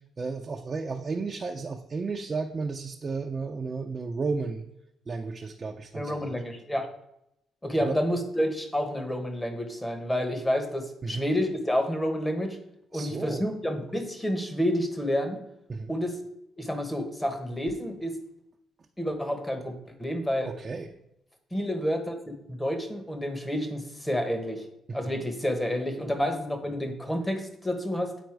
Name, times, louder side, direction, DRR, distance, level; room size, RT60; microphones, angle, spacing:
voice 1, 0.2-4.6 5.1-6.4 7.8-8.0 11.0-11.3 12.9-13.4 15.7-15.9 20.5-20.9 24.9-25.1, right 4 dB, 35° right, 2 dB, 0.6 m, -33 dB
voice 2, 5.9-6.9 7.6-12.6 12.9-15.4 15.9-16.2 16.6-18.2 19.0-20.5 21.5-24.6 24.9-28.1, equal, 10° left, 6 dB, 1.3 m, -29 dB
9.1 x 4.2 x 4.8 m, 0.80 s
cardioid pair, 90°, 0 cm